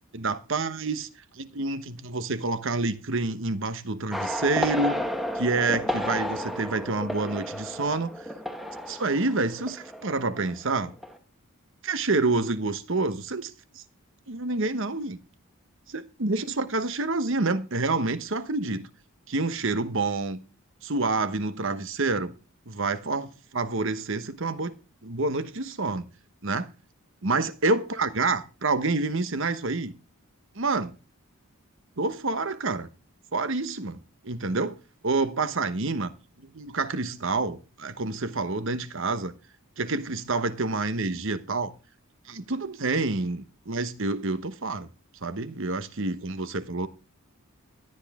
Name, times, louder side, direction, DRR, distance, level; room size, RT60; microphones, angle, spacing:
voice 1, 0.1-1.1 1.4-5.0 5.3-8.3 8.9-10.9 11.8-13.8 14.3-15.2 15.9-18.9 19.3-20.4 20.8-22.3 22.7-24.7 25.0-26.0 26.4-26.7 27.2-30.0 30.5-30.9 32.0-32.9 33.3-34.0 34.2-34.8 35.0-36.1 36.5-39.3 39.8-41.7 42.3-44.9 45.2-46.9, right 3 dB, 60° right, 1.1 m, -28 dB
sound 1, 4.1-10.6 10.8-11.2, equal, ahead, 1.2 m, -32 dB
16.5 x 10.5 x 3.6 m
head